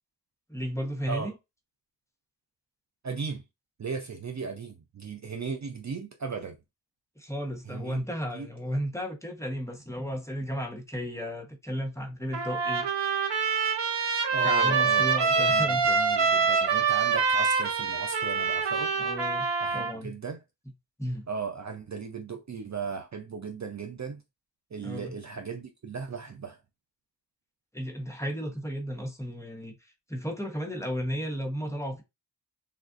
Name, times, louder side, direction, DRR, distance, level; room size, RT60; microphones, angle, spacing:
voice 1, 0.5-1.3 7.2-12.9 14.4-15.8 19.0-19.5 19.7-20.1 21.0-21.3 24.8-25.2 27.7-29.8 30.1-32.0, equal, 5° left, 1.0 m, -34 dB
voice 2, 3.0-3.4 3.8-6.6 7.7-8.0 8.3-8.5 14.3-15.1 15.4-18.9 19.6-20.4 21.3-24.2 24.7-26.6, right 5 dB, 40° right, 0.5 m, -36 dB
Trumpet, 12.3-19.9, right 5 dB, 80° right, 0.8 m, -25 dB
3.5 x 2.4 x 2.5 m
cardioid pair, 50°, 43 cm